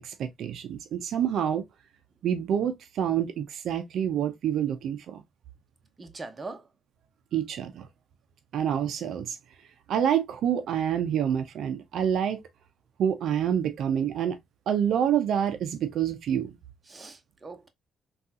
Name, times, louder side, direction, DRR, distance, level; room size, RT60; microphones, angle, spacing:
voice 1, 0.0-1.6 2.2-5.2 7.3-7.9 8.5-9.4 9.9-12.4 13.0-14.4 14.7-16.5, right 9 dB, 70° right, 0.4 m, -27 dB
voice 2, 6.0-6.7 16.9-17.7, right 3 dB, 25° right, 0.7 m, -41 dB
3.6 x 2.3 x 2.6 m
cardioid pair, 90°, 0 cm